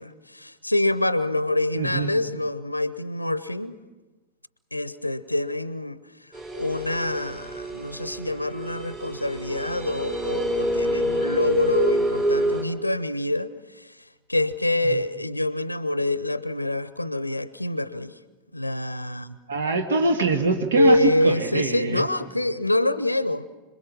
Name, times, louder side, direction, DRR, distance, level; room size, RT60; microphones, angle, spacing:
voice 1, 0.0-3.8 4.7-6.0 6.5-13.5 13.7-13.9 14.3-18.1 18.5-19.4 20.8-23.4, left 1 dB, 85° left, 0.6 m, -25 dB
voice 2, 1.7-2.1 14.8-15.0 19.5-21.0 21.2-22.1, right 3 dB, 65° right, 1.8 m, -24 dB
sound 1, 6.3-12.6, right 1 dB, 25° right, 4.8 m, -27 dB
26.5 x 21.5 x 6.1 m
figure-of-eight pair, 90°, 0 cm